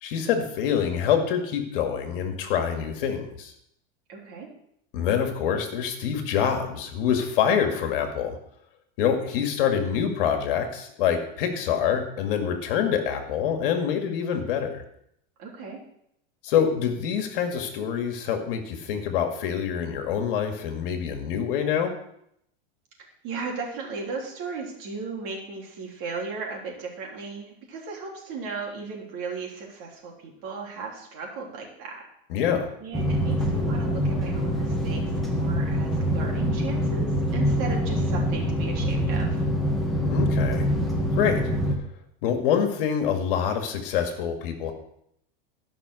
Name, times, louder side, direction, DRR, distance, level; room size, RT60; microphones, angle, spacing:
voice 1, 0.0-3.5 4.9-8.4 9.0-14.8 16.4-21.9 32.3-32.7 40.0-40.7 41.1-41.4 42.2-44.7, left 8 dB, 65° left, 5 dB, 2.0 m, -26 dB
voice 2, 4.1-4.5 15.4-15.8 23.2-32.0 32.8-39.4, right 4 dB, 45° right, -1 dB, 3.4 m, -36 dB
sound 1, 32.9-41.7, equal, ahead, 1.5 m, -25 dB
13.0 x 5.9 x 6.3 m, 0.73 s
supercardioid pair, 150°, 29 cm